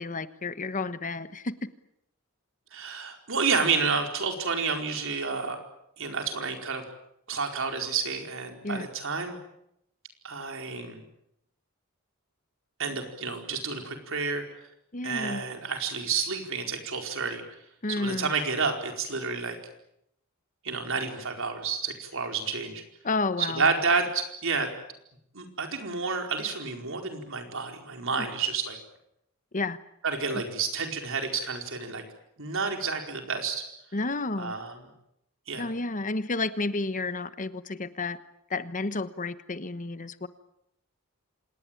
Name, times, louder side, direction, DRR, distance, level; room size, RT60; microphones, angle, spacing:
voice 1, 0.0-1.5 8.6-8.9 14.9-15.4 17.8-18.3 23.0-23.6 29.5-29.8 30.3-30.4 33.9-34.5 35.6-38.2 38.5-40.3, left 3 dB, 35° left, 13 dB, 1.1 m, -31 dB
voice 2, 2.7-5.6 6.0-6.8 7.3-9.4 10.2-11.0 12.8-14.4 15.0-17.4 17.9-19.6 20.6-22.8 23.4-24.7 25.3-28.8 30.0-32.0 32.4-33.6 34.4-34.7 35.5-35.7, right 5 dB, 65° right, 4 dB, 4.7 m, -30 dB
27.0 x 19.5 x 9.0 m, 0.80 s
head